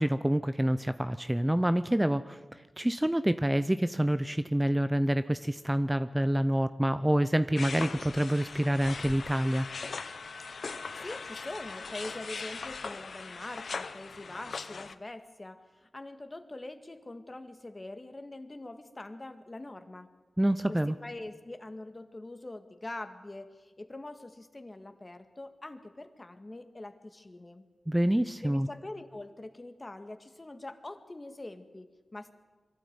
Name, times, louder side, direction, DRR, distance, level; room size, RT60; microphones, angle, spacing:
voice 1, 0.0-2.4 2.8-9.7 20.4-21.0 27.9-28.7, right 1 dB, 10° right, 12 dB, 0.6 m, -27 dB
sound 1, 7.6-14.9, left 4 dB, 75° left, 0.8 m, -40 dB
voice 2, 10.9-20.1 20.7-27.7 28.4-32.3, left 2 dB, 35° left, 8 dB, 1.9 m, -44 dB
23.5 x 13.0 x 9.5 m, 1.3 s
cardioid pair, 50°, 0 cm